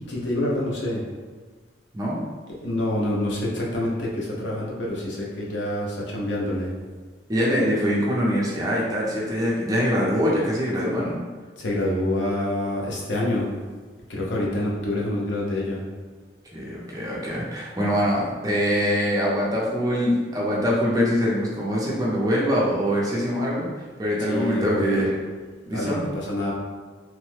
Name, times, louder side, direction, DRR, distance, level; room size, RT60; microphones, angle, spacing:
voice 1, 0.1-1.0 2.5-6.7 11.6-13.5 14.1-15.8 24.3-25.1 25.7-26.5, left 1 dB, 75° left, -4 dB, 0.7 m, -27 dB
voice 2, 7.3-11.2 16.5-25.2 25.7-26.0, equal, 20° right, -5 dB, 0.5 m, -24 dB
3.1 x 2.1 x 3.2 m, 1.4 s
head